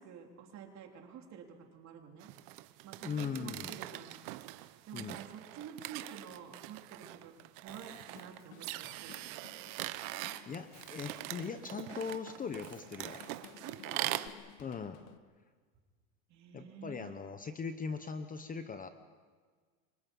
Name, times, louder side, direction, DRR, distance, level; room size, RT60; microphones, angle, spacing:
voice 1, 0.0-1.5 1.7-2.3 2.8-4.2 4.9-7.3 7.6-9.4 13.6-14.1 16.3-17.2, right 7 dB, 40° right, 2 dB, 3.4 m, -49 dB
sound 1, 2.2-14.3, right 18 dB, 65° right, 1.1 m, -43 dB
voice 2, 3.0-3.7 4.9-5.2 10.5-13.2 14.6-15.0 16.5-18.9, left 5 dB, 20° left, 9 dB, 0.9 m, -40 dB
Drum kit, 7.7-15.2, left 13 dB, 90° left, 1.5 m, -57 dB
28.5 x 25.0 x 5.5 m, 1.5 s
supercardioid pair, 145°, 41 cm